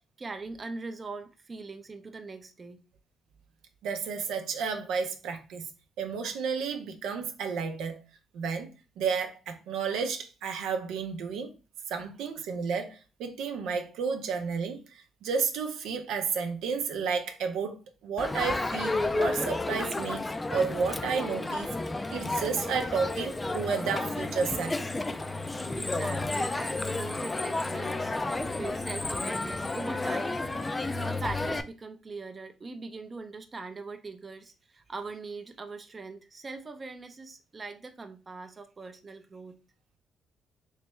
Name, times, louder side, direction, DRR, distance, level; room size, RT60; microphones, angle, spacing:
voice 1, 0.2-2.8 25.3-25.4 25.8-28.1 28.5-39.6, right 3 dB, 30° right, 0.5 m, -41 dB
voice 2, 3.8-5.7 6.0-8.0 8.3-8.7 9.0-11.5 11.9-17.8 18.0-20.2 20.5-21.7 22.1-24.8, right 5 dB, 85° right, 0.6 m, -32 dB
Crowd, 18.2-31.6, left 2 dB, 20° left, 0.4 m, -31 dB
3.4 x 3.2 x 3.1 m
cardioid pair, 90°, 0 cm